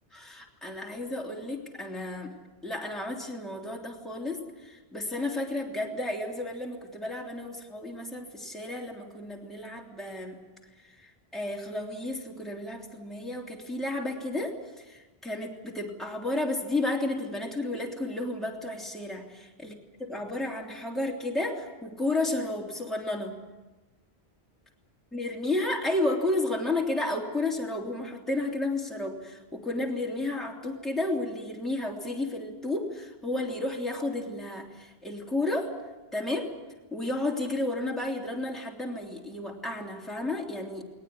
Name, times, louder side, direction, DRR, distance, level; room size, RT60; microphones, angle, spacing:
voice 1, 0.1-2.4 2.6-10.4 11.0-19.7 20.0-23.4 25.1-35.8 36.1-36.5 36.9-40.8, left 2 dB, ahead, -2 dB, 3.2 m, -32 dB
20.0 x 19.5 x 10.0 m, 1.2 s
omnidirectional pair, 1.1 m